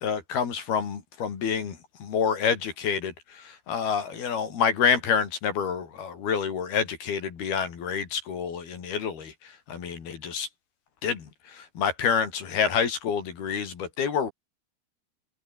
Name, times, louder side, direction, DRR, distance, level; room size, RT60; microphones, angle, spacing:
voice 1, 0.0-9.3 9.7-10.5 11.0-14.3, left 6 dB, 65° left, 5.3 m, -28 dB
open air
omnidirectional pair, 4.8 m